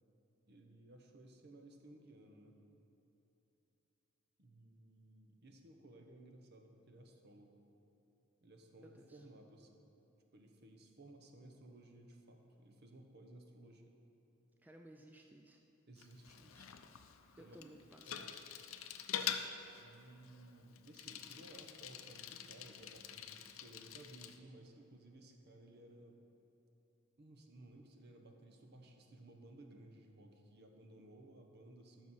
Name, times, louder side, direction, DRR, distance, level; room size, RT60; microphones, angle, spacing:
voice 1, 0.5-2.6 4.4-7.6 8.4-9.8 10.3-13.9 15.9-16.7 17.4-17.7 18.1-18.4 19.8-26.3 27.2-32.1, right 1 dB, 55° right, 3 dB, 0.9 m, -58 dB
voice 2, 8.8-9.2 14.6-15.6 17.4-18.4, right 1 dB, 10° right, 2 dB, 0.3 m, -58 dB
Bicycle, 16.0-24.4, left 8 dB, 75° left, 0.5 m, -46 dB
13.5 x 6.1 x 4.2 m, 3.0 s
head